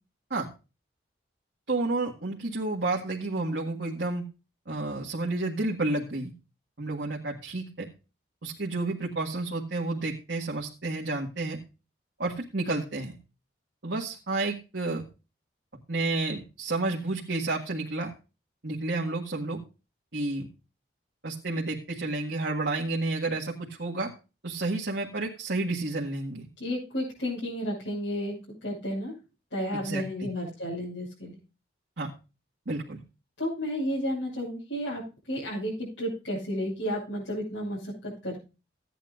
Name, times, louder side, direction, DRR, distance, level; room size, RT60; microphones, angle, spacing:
voice 1, 1.7-4.2 4.7-6.3 6.8-7.9 8.4-11.6 12.2-13.1 13.8-15.0 15.9-18.1 18.6-19.6 20.1-20.5 21.2-24.1 24.4-26.5 29.7-30.3 32.0-32.1 32.7-33.0, right 2 dB, 70° right, -2 dB, 1.7 m, -30 dB
voice 2, 26.6-28.3 28.6-29.1 29.5-31.4 33.4-35.0 35.3-38.4, equal, 90° left, -7 dB, 6.6 m, -32 dB
16.0 x 10.0 x 2.5 m, 0.30 s
head